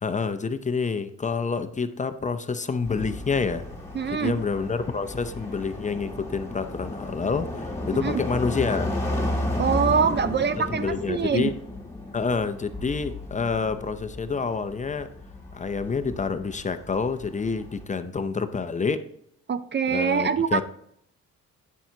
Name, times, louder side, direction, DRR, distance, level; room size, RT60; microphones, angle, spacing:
voice 1, 0.0-3.7 4.1-8.9 10.8-11.5 12.1-15.1 15.5-19.0 19.9-20.6, left 5 dB, 25° left, 10 dB, 0.6 m, -28 dB
sound 1, 2.8-17.8, left 1 dB, 10° left, 2.3 m, -33 dB
voice 2, 3.9-4.3 8.0-8.2 9.6-11.5 19.5-20.6, right 6 dB, 35° right, 12 dB, 0.5 m, -24 dB
9.2 x 7.1 x 2.8 m, 0.71 s
cardioid pair, 90°, 30 cm